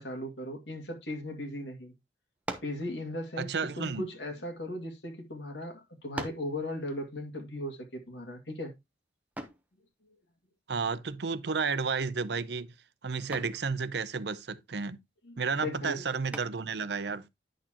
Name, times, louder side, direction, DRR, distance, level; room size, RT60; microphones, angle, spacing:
voice 1, 0.0-1.9 2.6-8.7 15.2-16.0, left 1 dB, 75° left, 2.3 m, -37 dB
sound 1, 2.4-2.8 3.8-5.0 5.6-5.7 6.2-6.6 9.4-9.7 11.6-12.0 12.3-12.7 13.3-13.6 16.3-16.8, right 1 dB, 10° right, 0.9 m, -41 dB
voice 2, 3.4-4.0 10.7-12.7 13.0-15.0 15.4-17.3, right 5 dB, 65° right, 0.6 m, -32 dB
10.0 x 6.5 x 2.9 m
head